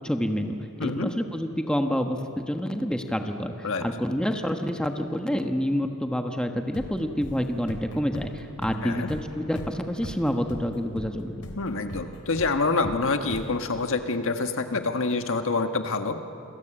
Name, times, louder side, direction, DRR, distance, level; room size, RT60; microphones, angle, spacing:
voice 1, 0.0-0.5 0.8-11.4, equal, 5° left, 4 dB, 1.3 m, -28 dB
voice 2, 0.8-1.1 3.6-3.9 8.8-9.1 11.6-16.2, left 3 dB, 60° left, 7 dB, 1.5 m, -26 dB
sound 1, 6.7-14.3, equal, 85° left, 3.5 m, -41 dB
28.0 x 21.5 x 8.9 m, 2.7 s
head